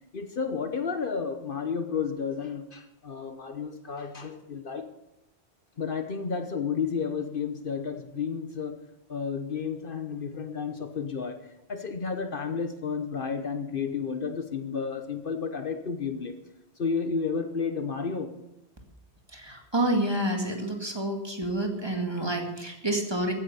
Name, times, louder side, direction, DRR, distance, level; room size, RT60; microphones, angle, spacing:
voice 1, 0.1-4.9 5.8-8.8 9.1-16.4 16.8-18.3, left 5 dB, 55° left, 8 dB, 1.1 m, -32 dB
voice 2, 19.3-23.3, right 1 dB, 25° right, 3 dB, 2.2 m, -28 dB
15.5 x 9.8 x 6.8 m, 0.89 s
omnidirectional pair, 1.1 m